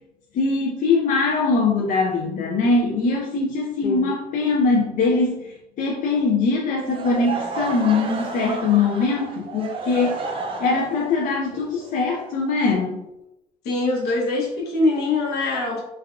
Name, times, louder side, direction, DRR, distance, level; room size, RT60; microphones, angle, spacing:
voice 1, 0.3-10.1 10.6-13.0, left 4 dB, 55° left, -1 dB, 0.5 m, -22 dB
Laughter / Crowd, 6.8-12.8, right 4 dB, 30° right, 0.4 m, -32 dB
voice 2, 13.6-15.8, left 2 dB, 75° left, -2 dB, 0.9 m, -23 dB
3.2 x 2.4 x 2.3 m, 0.88 s
cardioid pair, 110°, 17 cm